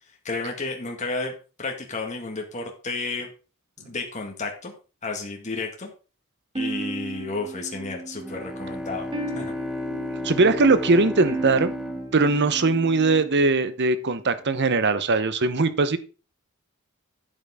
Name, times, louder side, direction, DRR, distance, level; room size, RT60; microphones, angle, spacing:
voice 1, 0.2-1.3 1.6-3.3 3.8-4.7 5.0-5.9 6.5-9.1 9.3-9.5, left 3 dB, 35° left, 1 dB, 1.9 m, -32 dB
sound 1, 6.5-13.7, right 2 dB, 25° right, 2.2 m, -35 dB
Bowed string instrument, 8.2-13.4, left 1 dB, ahead, 0.9 m, -33 dB
voice 2, 10.2-11.7 12.1-16.0, right 3 dB, 55° right, 13 dB, 1.0 m, -20 dB
10.5 x 9.0 x 3.7 m, 0.34 s
head